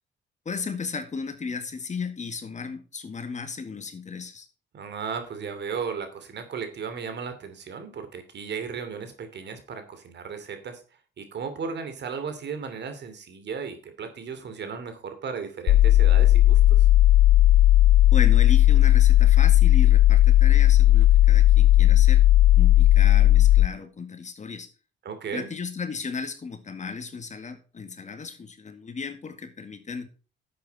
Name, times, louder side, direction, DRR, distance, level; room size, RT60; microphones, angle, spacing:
voice 1, 0.5-4.5 18.1-22.2 22.5-24.7 25.3-30.1, left 5 dB, 35° left, 8 dB, 2.0 m, -35 dB
voice 2, 4.7-10.8 11.2-16.9 25.0-25.5, right 6 dB, 60° right, 8 dB, 3.0 m, -35 dB
sound 1, 15.7-23.7, left 14 dB, 80° left, 0.5 m, -16 dB
11.0 x 8.0 x 4.2 m, 0.35 s
cardioid pair, 90°, 20 cm